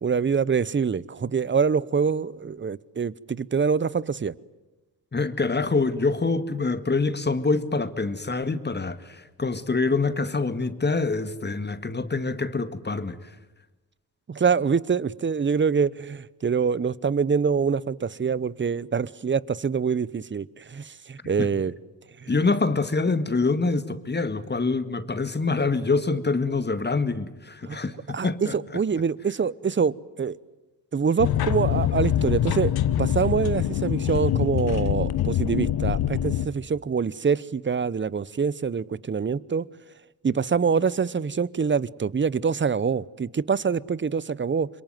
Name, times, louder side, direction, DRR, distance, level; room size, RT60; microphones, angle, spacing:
voice 1, 0.0-4.3 14.3-21.7 22.2-22.3 27.6-27.8 28.1-30.4 30.9-32.7 33.0-39.7 40.2-44.7, right 6 dB, 30° right, 0.9 m, -25 dB
voice 2, 5.1-13.2 21.4-21.5 22.3-28.8, left 3 dB, 25° left, 1.9 m, -25 dB
sound 1, 31.2-36.5, left 11 dB, 75° left, 1.2 m, -24 dB
26.5 x 22.5 x 9.5 m
supercardioid pair, 55°, 38 cm